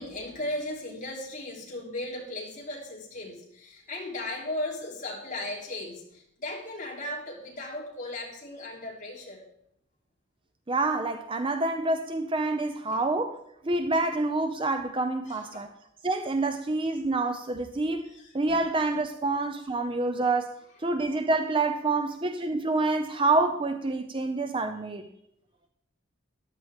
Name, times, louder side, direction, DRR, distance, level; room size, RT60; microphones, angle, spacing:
voice 1, 0.0-9.4 12.9-13.0 15.3-15.6 18.0-18.6 19.1-19.3 20.7-20.8 21.1-21.2, left 1 dB, 40° left, -3 dB, 3.0 m, -37 dB
voice 2, 10.7-13.4 13.6-15.7 16.0-25.1, right 2 dB, 25° right, 8 dB, 0.5 m, -27 dB
14.0 x 10.5 x 3.5 m, 0.74 s
head